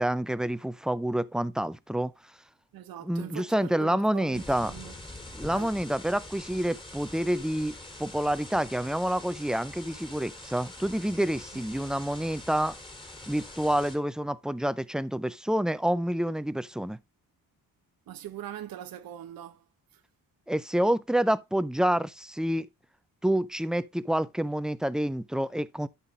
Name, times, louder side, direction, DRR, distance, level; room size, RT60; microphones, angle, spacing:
voice 1, 0.0-2.1 3.0-4.7 5.3-7.7 8.0-12.8 13.3-17.0 20.5-22.7 23.2-25.9, right 1 dB, ahead, 0.4 m, -28 dB
voice 2, 2.7-4.9 5.5-5.7 11.5-11.6 18.1-19.6 19.9-20.0, right 11 dB, 85° right, 0.9 m, -41 dB
sound 1, 4.3-14.0, left 1 dB, 15° left, 2.1 m, -44 dB
12.0 x 5.8 x 3.1 m
cardioid pair, 115°, 34 cm